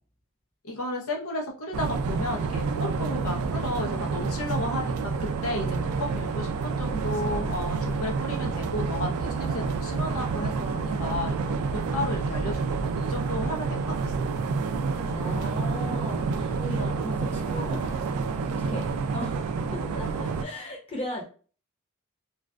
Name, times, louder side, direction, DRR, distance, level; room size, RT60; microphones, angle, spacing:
voice 1, 0.6-11.6 11.9-14.1, left 1 dB, 80° left, 0 dB, 0.7 m, -33 dB
sound 1, 1.7-20.4, right 4 dB, 90° right, 0.3 m, -29 dB
voice 2, 15.0-18.0 18.7-21.2, left 1 dB, 25° left, -3 dB, 0.8 m, -37 dB
2.4 x 2.1 x 2.3 m, 0.37 s
head